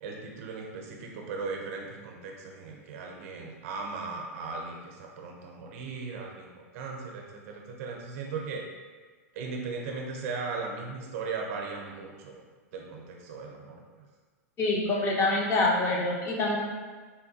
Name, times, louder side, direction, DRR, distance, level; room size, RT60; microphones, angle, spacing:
voice 1, 0.0-8.6 9.3-12.4 12.7-13.8, right 4 dB, 60° right, 1 dB, 0.6 m, -37 dB
voice 2, 14.6-16.6, left 2 dB, 30° left, -2 dB, 0.7 m, -26 dB
3.8 x 2.2 x 2.7 m, 1.4 s
hypercardioid pair, 110°, 8 cm